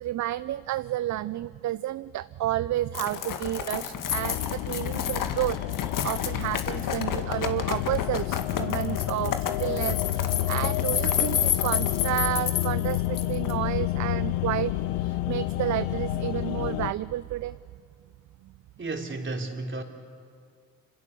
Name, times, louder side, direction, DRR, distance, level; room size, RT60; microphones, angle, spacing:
voice 1, 0.0-17.6, right 14 dB, 50° right, 16 dB, 0.6 m, -31 dB
sound 1, 2.9-13.5, left 9 dB, 60° left, 2.1 m, -30 dB
sound 2, 4.1-16.9, left 16 dB, 80° left, 0.7 m, -30 dB
voice 2, 18.8-19.8, right 2 dB, 30° right, 3 dB, 3.7 m, -32 dB
27.5 x 26.5 x 6.9 m, 2.1 s
hypercardioid pair, 55°, 37 cm